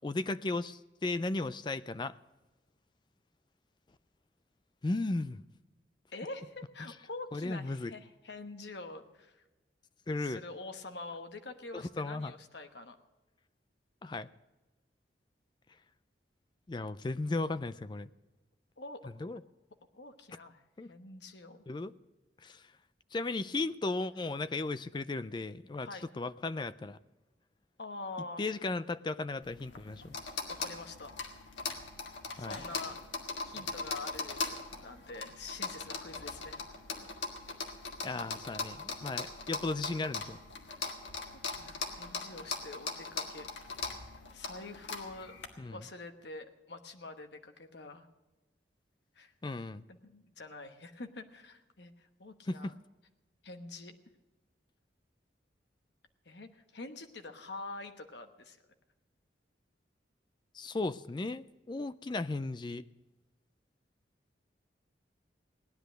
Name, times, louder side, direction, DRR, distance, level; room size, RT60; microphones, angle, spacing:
voice 1, 0.0-2.2 4.8-5.4 7.3-7.9 10.1-10.4 11.7-12.3 14.0-14.3 16.7-18.1 19.2-19.4 20.8-20.9 21.7-21.9 22.4-22.6 23.1-25.9 26.2-27.0 28.4-30.2 32.4-32.6 38.0-40.4 45.6-45.8 49.4-49.8 52.5-52.7 60.5-62.9, left 2 dB, 25° left, 15 dB, 0.4 m, -35 dB
voice 2, 6.1-9.4 10.2-13.0 18.8-19.1 19.9-20.6 20.9-21.6 25.8-26.1 27.8-28.4 30.5-31.1 32.4-33.0 33.4-36.6 41.3-43.5 44.3-45.3 45.7-48.1 49.1-49.3 49.9-52.7 53.4-53.9 56.2-58.6, left 3 dB, 70° left, 7 dB, 1.2 m, -46 dB
sound 1, 29.4-45.5, left 4 dB, 90° left, 1.8 m, -40 dB
17.0 x 10.5 x 6.4 m, 1.1 s
head